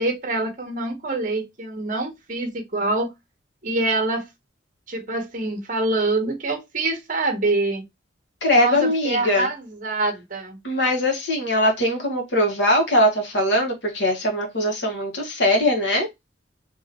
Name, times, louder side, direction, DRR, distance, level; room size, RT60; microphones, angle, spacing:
voice 1, 0.0-3.1 3.6-4.3 4.9-7.8 8.5-10.6, right 2 dB, 45° right, 1.2 m, -25 dB
voice 2, 8.4-9.5 10.6-16.1, left 1 dB, 70° left, 1.7 m, -21 dB
3.7 x 3.0 x 3.0 m
head